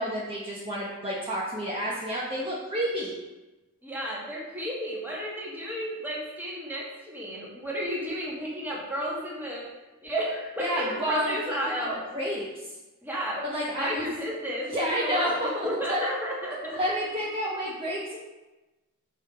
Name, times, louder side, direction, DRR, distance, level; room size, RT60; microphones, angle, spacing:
voice 1, 0.0-3.1 10.6-12.5 13.4-14.1 14.7-16.0 16.6-18.2, equal, 25° right, -6 dB, 1.1 m, -30 dB
voice 2, 3.8-9.7 10.0-12.3 13.0-13.4 13.8-15.4 15.6-17.0, equal, 10° right, -5 dB, 2.0 m, -32 dB
6.2 x 5.8 x 5.0 m, 1.1 s
head